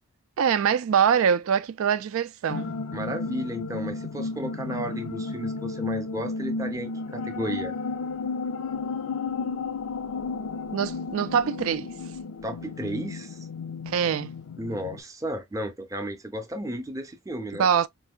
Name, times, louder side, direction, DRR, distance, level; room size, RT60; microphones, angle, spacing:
voice 1, 0.4-2.7 10.7-11.9 13.9-14.3 17.5-17.9, right 7 dB, 70° right, 0.3 m, -24 dB
sound 1, 2.5-15.0, left 4 dB, 80° left, 0.5 m, -33 dB
voice 2, 2.9-7.7 12.4-13.5 14.6-17.7, right 1 dB, 15° right, 0.5 m, -33 dB
4.6 x 2.2 x 2.3 m
head